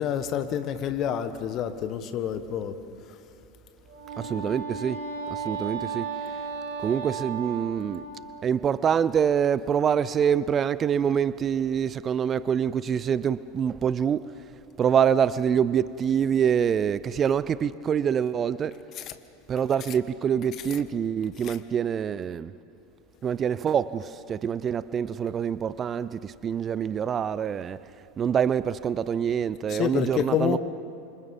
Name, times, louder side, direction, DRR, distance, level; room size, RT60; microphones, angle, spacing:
voice 1, 0.0-2.8 3.1-3.2 18.9-19.1 21.4-21.6 29.7-30.6, left 9 dB, 45° left, 1.5 m, -28 dB
Wind instrument woodwind instrument, 3.9-8.5, right 5 dB, 65° right, 2.3 m, -35 dB
voice 2, 4.2-5.0 5.3-6.1 6.8-8.0 8.4-14.3 14.8-18.8 19.5-22.5 23.2-27.8 28.2-30.6, right 8 dB, 30° right, 0.6 m, -25 dB
28.0 x 25.5 x 5.5 m
figure-of-eight pair, 80°, 0 cm